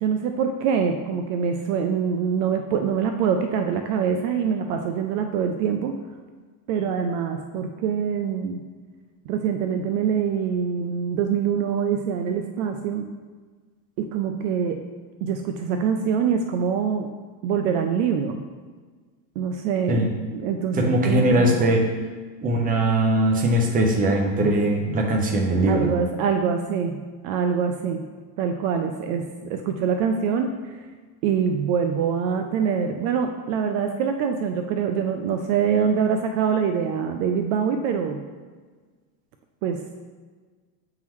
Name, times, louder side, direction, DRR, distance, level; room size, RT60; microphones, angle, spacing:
voice 1, 0.0-6.0 6.7-8.6 9.3-13.1 14.0-14.8 15.2-17.1 17.4-18.4 19.4-20.0 20.3-21.5 25.7-28.0 28.4-29.2 29.5-30.8 31.2-38.2 39.6-39.8, right 7 dB, 55° right, 5 dB, 0.5 m, -24 dB
voice 2, 20.7-21.8 22.4-25.9, right 1 dB, 15° right, 1 dB, 0.7 m, -20 dB
8.4 x 3.8 x 3.0 m, 1.5 s
supercardioid pair, 140°, 50 cm